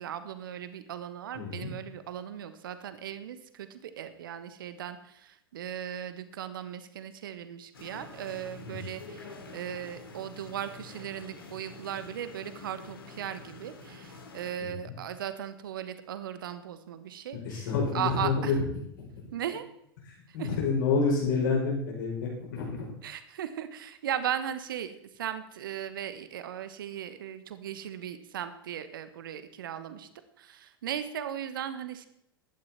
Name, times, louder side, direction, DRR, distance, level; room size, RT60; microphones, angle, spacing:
voice 1, 0.0-18.6 19.3-19.6 20.3-20.5 23.0-30.1 30.4-32.1, right 10 dB, 60° right, 11 dB, 1.4 m, -37 dB
voice 2, 1.3-1.7 8.6-8.8 14.6-15.0 17.4-18.6 19.0-19.1 20.3-22.9, left 4 dB, 55° left, -3 dB, 5.4 m, -28 dB
sound 1, 7.7-14.5, left 3 dB, 75° left, 2.9 m, -47 dB
15.5 x 12.0 x 4.5 m, 0.77 s
figure-of-eight pair, 90°, 12 cm